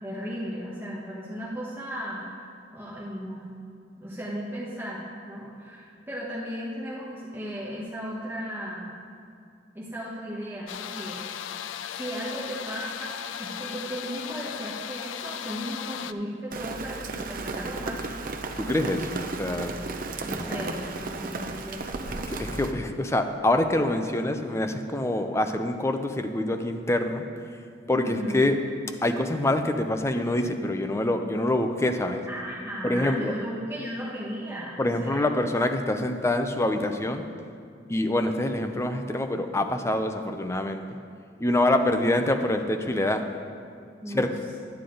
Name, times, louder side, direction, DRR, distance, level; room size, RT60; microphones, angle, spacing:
voice 1, 0.0-3.5 4.0-8.9 9.7-11.2 12.0-18.1 20.2-22.2 27.9-28.4 32.3-35.2 44.0-44.3, equal, 10° right, -7 dB, 1.2 m, -36 dB
sound 1, 10.7-16.1, left 9 dB, 85° left, 0.3 m, -36 dB
Rain, 16.5-22.7, right 3 dB, 50° right, 0.6 m, -34 dB
voice 2, 18.6-19.7 20.2-20.8 22.3-27.2 27.9-28.6 29.0-32.2 32.8-33.3 34.8-37.3 37.9-40.8 41.4-43.2 44.1-44.3, left 1 dB, 15° left, 6 dB, 0.5 m, -26 dB
10.0 x 9.6 x 3.9 m, 2.4 s
head